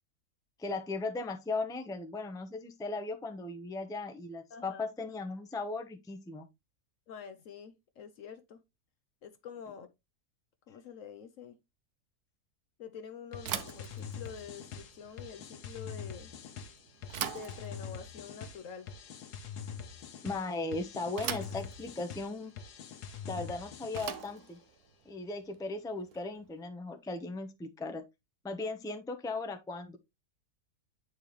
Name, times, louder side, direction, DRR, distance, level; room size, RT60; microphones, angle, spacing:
voice 1, 0.6-6.5 20.2-22.5 23.3-24.6 25.1-28.0 28.4-30.0, left 3 dB, 5° left, 0.6 m, -37 dB
voice 2, 4.5-4.8 7.1-8.6 9.2-9.9 10.7-11.6 12.8-16.3 17.2-18.9, left 6 dB, 65° left, 0.9 m, -47 dB
sound 1, 13.3-24.4, left 7 dB, 90° left, 1.5 m, -45 dB
Bicycle / Thump thud, 13.4-26.5, right 9 dB, 75° right, 1.3 m, -44 dB
8.5 x 4.5 x 3.1 m
omnidirectional pair, 1.7 m